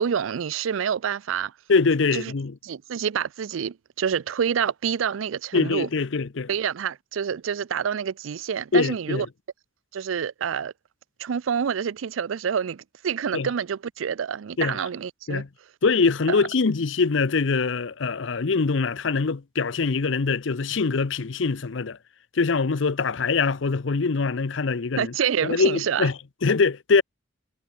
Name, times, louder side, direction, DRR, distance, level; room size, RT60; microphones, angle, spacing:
voice 1, 0.0-1.5 2.1-2.3 2.6-5.9 6.5-9.3 9.9-10.7 11.2-15.4 16.3-16.4 25.0-26.1, right 7 dB, 85° right, 0.4 m, -27 dB
voice 2, 1.7-2.5 5.5-6.5 8.7-9.3 13.3-13.5 14.6-14.8 15.3-15.5 15.8-22.0 22.3-25.1 25.4-26.1 26.4-27.0, left 4 dB, 70° left, 0.7 m, -23 dB
head